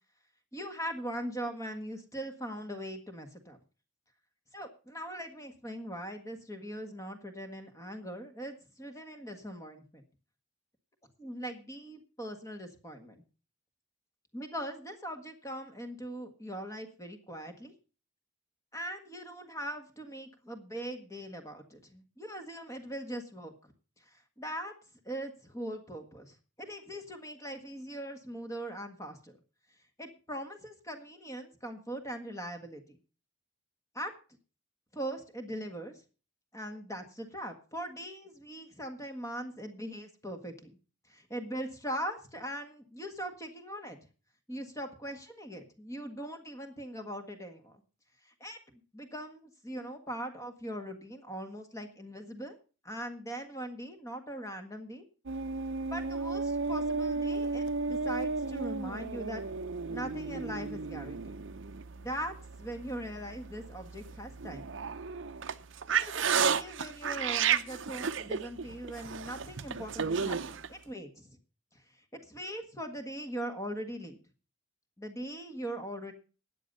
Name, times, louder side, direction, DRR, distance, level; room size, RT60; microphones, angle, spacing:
voice 1, 0.5-3.6 4.5-10.1 11.2-13.2 14.3-17.7 18.7-23.7 24.0-24.7 25.1-29.4 30.0-33.0 33.9-34.1 34.9-36.0 36.5-40.7 41.1-44.0 44.5-47.8 48.3-52.6 52.8-55.0 55.9-59.4 59.9-61.4 61.9-64.7 65.9-71.4 72.1-74.2 75.0-76.1, right 1 dB, 15° left, 6 dB, 1.6 m, -41 dB
sound 1, 55.3-70.7, right 5 dB, 60° right, 0.7 m, -33 dB
13.5 x 9.2 x 5.4 m, 0.36 s
head